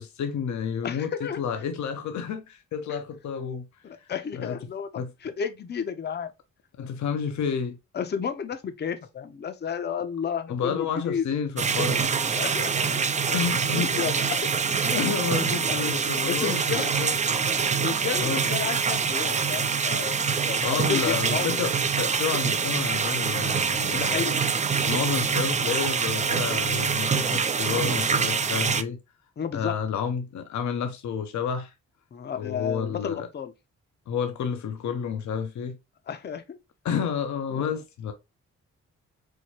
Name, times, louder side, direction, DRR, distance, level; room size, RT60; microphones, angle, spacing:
voice 1, 0.0-3.7 4.3-4.6 5.0-5.1 6.8-7.8 10.5-12.1 12.9-14.1 14.8-17.2 18.2-18.5 20.6-24.2 24.8-29.0 29.5-31.7 32.4-33.3 34.1-35.8 36.8-38.1, left 7 dB, 75° left, 0.6 m, -30 dB
voice 2, 0.8-1.4 2.9-3.0 3.8-6.3 7.9-11.2 12.4-12.9 13.7-14.4 15.7-15.9 16.3-16.9 17.8-21.6 23.9-24.4 29.4-29.7 32.1-33.5 36.1-36.6 37.5-37.7, left 7 dB, 35° left, 0.6 m, -32 dB
sound 1, 11.6-28.8, right 6 dB, 25° right, 0.4 m, -25 dB
4.5 x 2.2 x 2.8 m
cardioid pair, 65°, 29 cm